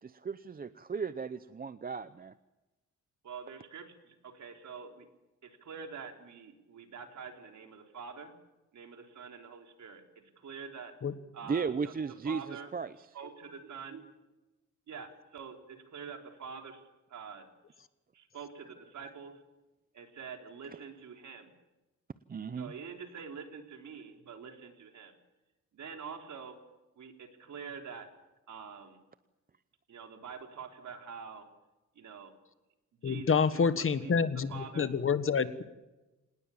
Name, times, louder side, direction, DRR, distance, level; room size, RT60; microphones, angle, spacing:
voice 1, 0.0-2.3 11.4-12.9 22.3-22.7, right 5 dB, 30° right, 13 dB, 0.7 m, -36 dB
voice 2, 3.2-5.1 5.4-8.3 8.7-10.9 11.3-11.9 12.2-12.7 13.1-14.0 14.9-17.5 18.1-19.4 19.9-21.5 22.6-25.1 25.7-26.6 27.0-28.1 28.5-29.0 29.9-31.5 32.0-32.3 33.0-34.9, right 6 dB, 70° right, 4 dB, 3.8 m, -46 dB
voice 3, 33.0-35.6, left 6 dB, 45° left, 12 dB, 1.5 m, -28 dB
26.5 x 20.0 x 7.3 m, 1.0 s
wide cardioid pair, 130°, 30 cm